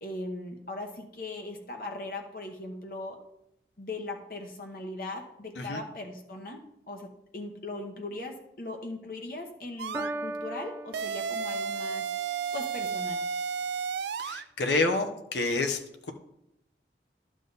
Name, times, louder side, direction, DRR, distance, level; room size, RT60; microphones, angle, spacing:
voice 1, 0.0-3.2 3.8-6.6 6.9-7.1 7.3-12.1 12.5-13.2, left 2 dB, 55° left, 2 dB, 1.0 m, -39 dB
sound 1, 9.8-10.1 10.9-14.4, right 6 dB, 75° right, 0.4 m, -32 dB
Piano, 9.9-11.9, right 2 dB, 15° right, 0.4 m, -38 dB
voice 2, 14.2-15.8, left 3 dB, 85° left, 5 dB, 1.0 m, -28 dB
12.0 x 7.4 x 4.0 m, 0.81 s
head